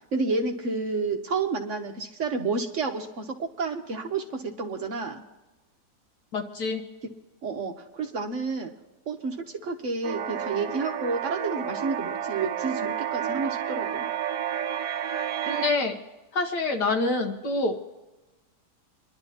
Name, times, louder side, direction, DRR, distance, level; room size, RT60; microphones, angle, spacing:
voice 1, 0.1-5.2 7.4-8.7 9.1-14.1, right 4 dB, 50° right, 4 dB, 1.2 m, -30 dB
voice 2, 6.3-6.8 15.5-16.0 16.3-17.8, left 3 dB, 75° left, 4 dB, 1.9 m, -26 dB
sound 1, 10.0-15.7, right 9 dB, 75° right, 1.3 m, -30 dB
27.5 x 11.5 x 2.9 m, 1.1 s
omnidirectional pair, 1.8 m